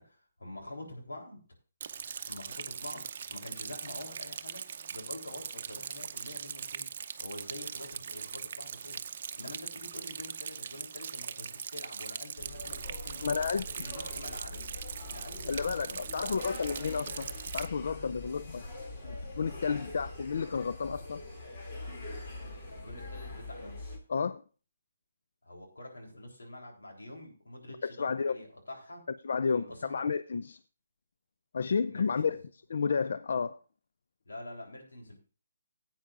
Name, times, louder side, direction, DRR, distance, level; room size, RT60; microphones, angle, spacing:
voice 1, 0.0-1.4 2.3-3.0 3.3-4.6 4.9-6.9 7.2-9.0 9.3-14.7 15.1-16.6 22.7-23.8 25.4-29.0 29.5-30.0 31.9-32.4 34.2-35.2, left 1 dB, 90° left, 0 dB, 3.4 m, -46 dB
Rain, 1.8-17.7, right 7 dB, 50° right, 0.6 m, -41 dB
sound 1, 12.4-24.0, left 2 dB, 40° left, 2.6 m, -43 dB
voice 2, 13.2-13.9 15.5-18.6 19.0-21.2 24.1-24.4 28.0-28.4 29.2-30.6 31.5-32.4 32.7-33.6, left 5 dB, 65° left, 14 dB, 0.3 m, -31 dB
15.5 x 8.7 x 2.5 m, 0.36 s
hypercardioid pair, 150°, 0 cm